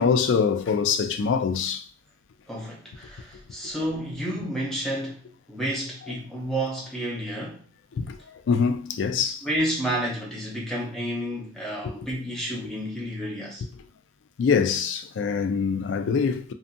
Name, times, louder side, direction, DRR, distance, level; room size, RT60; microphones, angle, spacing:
voice 1, 0.0-1.8 8.0-8.2 8.5-9.4 12.0-12.1 14.4-16.5, left 6 dB, 75° left, 0.3 m, -24 dB
voice 2, 2.5-7.6 9.1-13.6, right 1 dB, ahead, 0.6 m, -31 dB
2.6 x 2.4 x 2.6 m
head